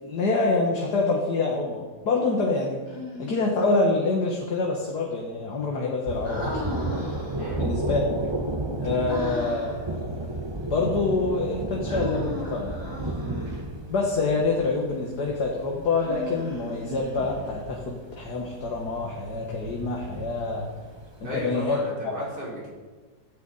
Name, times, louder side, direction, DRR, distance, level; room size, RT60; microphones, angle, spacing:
voice 1, 0.0-2.8 3.2-6.8 7.6-8.0 8.8-10.1 10.7-12.8 13.9-20.7 21.2-21.8, left 3 dB, 75° left, -1 dB, 2.3 m, -26 dB
Human voice, 2.9-3.7 6.2-7.6 9.1-9.9 11.9-13.7 15.9-17.5, left 1 dB, 10° left, 5.7 m, -37 dB
Thunder, 6.1-21.6, right 2 dB, 20° right, 0.9 m, -33 dB
voice 2, 21.2-22.7, equal, 85° right, -6 dB, 5.9 m, -35 dB
15.5 x 15.5 x 4.3 m, 1.4 s
omnidirectional pair, 1.8 m